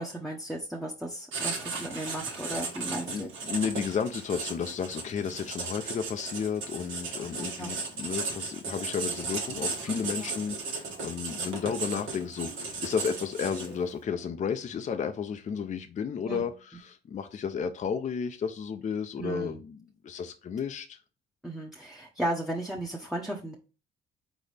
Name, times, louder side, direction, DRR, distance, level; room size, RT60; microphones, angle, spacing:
voice 1, 0.0-3.3 7.6-7.7 9.9-10.0 16.2-16.5 19.2-19.6 21.4-23.5, right 1 dB, ahead, 0.8 m, -35 dB
Writing, 1.3-13.9, right 4 dB, 80° right, 1.4 m, -36 dB
voice 2, 3.0-21.0, left 6 dB, 40° left, 0.5 m, -33 dB
4.1 x 4.0 x 3.3 m
cardioid pair, 90°, 20 cm